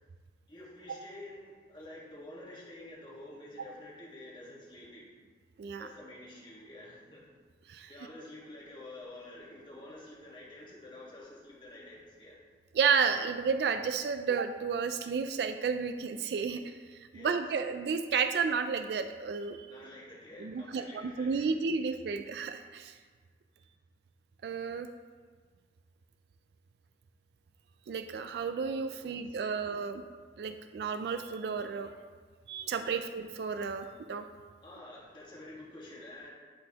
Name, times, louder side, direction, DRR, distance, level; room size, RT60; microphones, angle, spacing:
voice 1, 0.5-5.0 5.8-7.3 7.9-12.4 17.1-17.4 19.7-21.6 28.9-29.5 34.6-36.3, left 1 dB, 25° left, -6 dB, 1.6 m, -49 dB
voice 2, 12.8-16.8 17.1-19.7 20.4-22.9 24.4-24.9 27.9-30.0 30.4-31.9 32.5-34.2, right 6 dB, 65° right, 8 dB, 0.3 m, -32 dB
11.0 x 4.0 x 2.9 m, 1.5 s
head